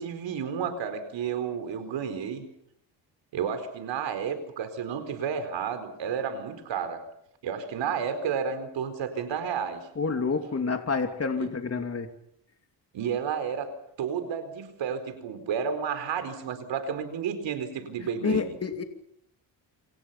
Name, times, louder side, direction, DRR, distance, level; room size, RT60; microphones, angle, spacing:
voice 1, 0.0-2.4 3.3-7.0 7.4-9.8 11.4-11.5 12.9-18.5, right 7 dB, 90° right, 9 dB, 4.5 m, -31 dB
voice 2, 10.0-12.1 18.2-18.8, left 4 dB, 35° left, 5 dB, 2.9 m, -28 dB
27.5 x 27.5 x 5.8 m, 0.73 s
cardioid pair, 95°, 43 cm